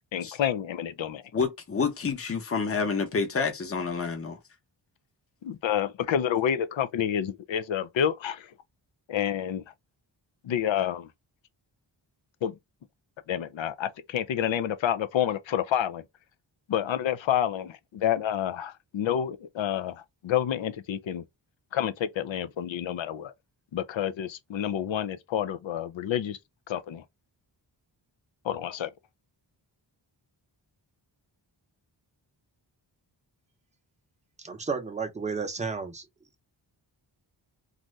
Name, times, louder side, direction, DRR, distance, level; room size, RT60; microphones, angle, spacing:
voice 1, 0.1-1.2 5.4-8.4 9.1-9.6 10.4-11.1 12.4-12.5 13.3-16.0 16.7-19.9 20.2-21.2 21.7-23.3 23.7-26.4 26.7-27.0 28.5-28.9, left 10 dB, 85° left, 0.6 m, -28 dB
voice 2, 1.3-4.4, left 5 dB, 30° left, 0.8 m, -28 dB
voice 3, 34.4-36.0, right 5 dB, 15° right, 0.6 m, -32 dB
2.6 x 2.5 x 3.1 m
wide cardioid pair, 145°, 44 cm